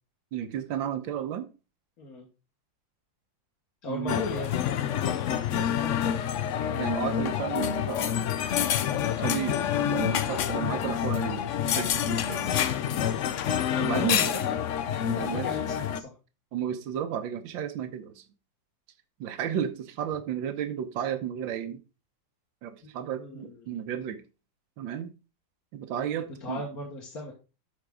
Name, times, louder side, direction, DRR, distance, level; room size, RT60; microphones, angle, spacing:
voice 1, 0.3-1.5 3.9-4.3 6.7-8.1 9.2-12.4 13.8-14.3 15.1-15.5 16.5-18.2 19.2-21.8 22.6-24.2 24.8-25.1 25.7-26.6, right 9 dB, 80° right, 9 dB, 1.7 m, -33 dB
voice 2, 2.0-2.3 3.8-5.2 5.6-6.4 12.9-13.1 14.1-14.6 15.2-16.1 22.8-22.9 23.2-23.8 26.2-27.3, left 2 dB, 50° left, -2 dB, 2.0 m, -38 dB
sound 1, 4.1-16.0, left 9 dB, 90° left, 0.6 m, -27 dB
13.0 x 4.7 x 3.7 m, 0.31 s
omnidirectional pair, 2.1 m